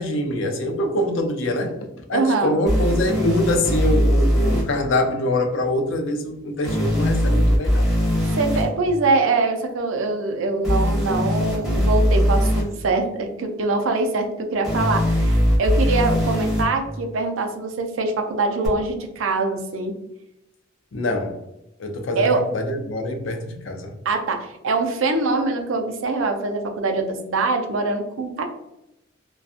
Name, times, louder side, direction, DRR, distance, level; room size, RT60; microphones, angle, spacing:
voice 1, 0.0-1.8 2.1-7.9 20.9-21.3 21.8-22.3 22.5-23.9, left 1 dB, 65° left, 4 dB, 0.5 m, -24 dB
voice 2, 2.1-2.6 8.4-19.9 22.2-22.4 24.0-28.4, right 3 dB, 75° right, 4 dB, 0.5 m, -23 dB
sound 1, 2.7-4.6 6.6-8.6 10.6-12.6 14.6-16.6 18.6-18.7, equal, ahead, 0.9 m, -20 dB
2.6 x 2.2 x 2.4 m, 0.87 s
head